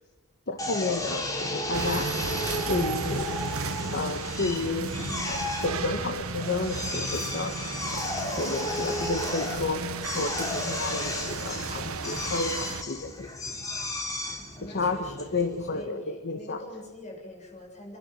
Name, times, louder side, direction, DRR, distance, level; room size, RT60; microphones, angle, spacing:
voice 1, 0.5-2.1 2.7-3.3 3.9-4.9 5.3-7.5 7.9-8.1 8.4-9.8 10.1-13.3 14.6-16.6, left 3 dB, 50° left, 6 dB, 1.5 m, -31 dB
Drill, 0.6-15.9, left 1 dB, 15° left, 3.2 m, -34 dB
sound 1, 1.7-12.8, right 4 dB, 65° right, 1.4 m, -34 dB
voice 2, 14.6-15.3 15.7-18.0, left 1 dB, 35° left, 0 dB, 7.0 m, -44 dB
29.5 x 12.0 x 9.0 m, 1.2 s
head